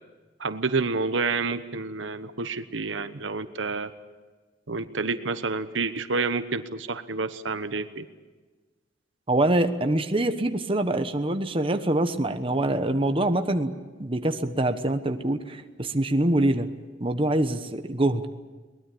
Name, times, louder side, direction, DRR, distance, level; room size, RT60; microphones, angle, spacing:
voice 1, 0.4-3.9 4.7-8.1, right 4 dB, 85° right, 11 dB, 1.1 m, -29 dB
voice 2, 9.3-13.7 14.0-16.7 17.0-18.3, right 1 dB, 30° right, 7 dB, 1.1 m, -24 dB
22.0 x 20.0 x 8.6 m, 1.3 s
head